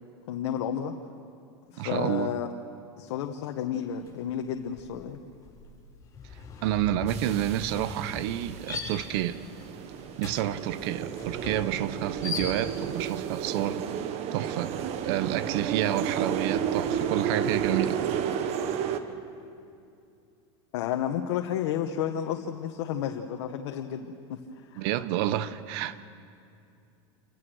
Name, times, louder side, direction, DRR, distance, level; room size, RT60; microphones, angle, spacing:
voice 1, 0.3-0.9 1.7-2.5 3.0-5.2 20.7-24.9, left 9 dB, 70° left, 1.3 m, -31 dB
voice 2, 1.8-2.3 6.6-9.4 10.2-13.8 14.3-14.7 15.0-18.0 24.8-26.0, right 12 dB, 65° right, 1.1 m, -29 dB
sound 1, 4.0-4.3 4.6-13.0, left 4 dB, 25° left, 7.0 m, -40 dB
sound 2, 7.1-19.0, right 8 dB, 45° right, 1.4 m, -32 dB
28.5 x 15.5 x 6.4 m
supercardioid pair, 120°, 15 cm